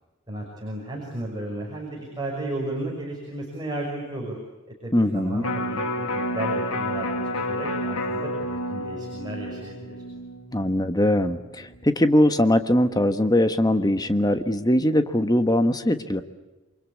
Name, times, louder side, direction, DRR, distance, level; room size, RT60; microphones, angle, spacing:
voice 1, 0.3-4.4 4.8-5.9 6.1-9.8, right 1 dB, 20° right, -1 dB, 5.8 m, -33 dB
voice 2, 4.9-5.4 10.5-16.2, left 1 dB, 20° left, 10 dB, 1.3 m, -21 dB
Electric guitar, 5.4-11.6 12.0-12.1, left 1 dB, 85° left, 2.4 m, -30 dB
28.5 x 24.0 x 8.5 m, 1.1 s
head